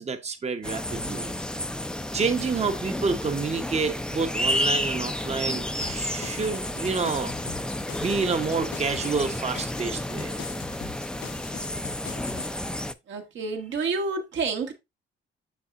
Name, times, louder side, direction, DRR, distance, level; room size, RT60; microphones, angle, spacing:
voice 1, 0.0-1.3 2.1-7.3 8.0-10.4, right 4 dB, 35° right, 1.0 m, -28 dB
sound 1, 0.6-12.9, left 1 dB, 5° left, 0.5 m, -31 dB
sound 2, 5.8-12.5, left 9 dB, 75° left, 1.0 m, -42 dB
voice 2, 13.1-14.7, right 4 dB, 70° right, 1.7 m, -29 dB
7.0 x 6.6 x 2.5 m
cardioid pair, 90°, 20 cm